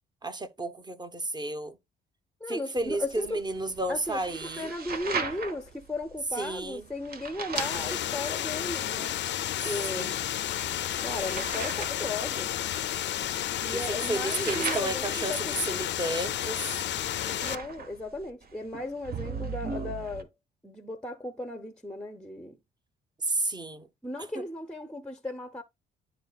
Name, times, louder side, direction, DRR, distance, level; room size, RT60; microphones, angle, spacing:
voice 1, 0.2-1.8 2.5-4.7 6.4-6.8 9.9-10.3 13.7-16.8 23.2-23.9 24.3-24.4, right 2 dB, 20° right, 1.1 m, -32 dB
voice 2, 2.4-3.4 3.9-9.2 9.6-10.1 11.0-12.5 13.6-15.6 17.2-20.3 20.6-22.6 24.0-25.6, left 2 dB, 5° left, 0.8 m, -36 dB
sound 1, 2.8-20.2, right 5 dB, 50° right, 1.2 m, -40 dB
sound 2, 7.6-17.6, left 12 dB, 65° left, 0.6 m, -31 dB
11.0 x 3.9 x 2.4 m
cardioid pair, 90°, 20 cm